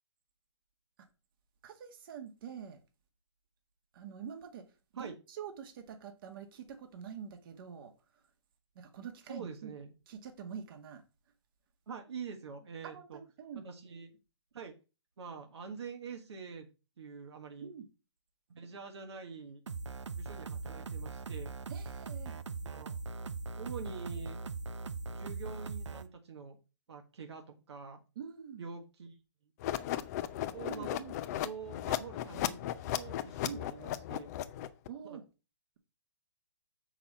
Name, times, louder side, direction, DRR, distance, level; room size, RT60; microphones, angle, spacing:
voice 1, 1.6-2.8 3.9-8.3 8.8-9.7 10.1-11.0 12.8-13.7 17.6-17.9 21.7-22.4 28.2-28.6 30.7-31.2 33.4-33.6 34.9-35.2, right 7 dB, 50° right, 1.7 m, -46 dB
voice 2, 9.3-9.9 11.9-13.2 13.6-14.1 14.5-14.7 15.2-16.7 17.0-17.7 18.5-19.6 20.2-21.5 22.6-23.0 23.6-24.4 25.1-26.6 26.9-28.0 28.6-29.1 30.5-31.0 31.4-34.3 35.1-35.2, right 6 dB, 70° right, 1.6 m, -45 dB
sound 1, 19.7-26.0, right 4 dB, 85° right, 0.8 m, -40 dB
sound 2, 29.6-34.9, left 13 dB, 35° left, 0.7 m, -36 dB
7.2 x 6.0 x 4.2 m
hypercardioid pair, 135°, 15 cm